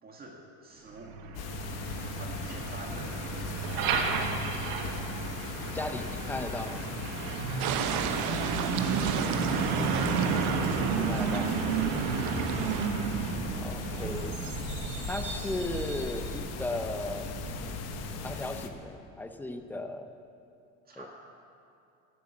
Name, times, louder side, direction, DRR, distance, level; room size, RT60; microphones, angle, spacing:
voice 1, 0.0-1.1 2.2-3.5 7.6-8.6 12.2-12.4 20.9-21.1, right 2 dB, 25° right, 0 dB, 1.8 m, -45 dB
Truck, 0.9-18.6, right 5 dB, 75° right, 1.5 m, -32 dB
sound 1, 1.3-18.7, left 6 dB, 45° left, 1.1 m, -39 dB
voice 2, 5.7-6.9 10.9-11.6 13.6-14.5 15.1-17.3 18.2-20.1 21.0-21.1, left 2 dB, 5° left, 7 dB, 0.6 m, -36 dB
sound 2, 7.6-12.9, right 9 dB, 55° right, 0.9 m, -36 dB
13.5 x 7.8 x 8.7 m, 2.6 s
cardioid pair, 145°, 35 cm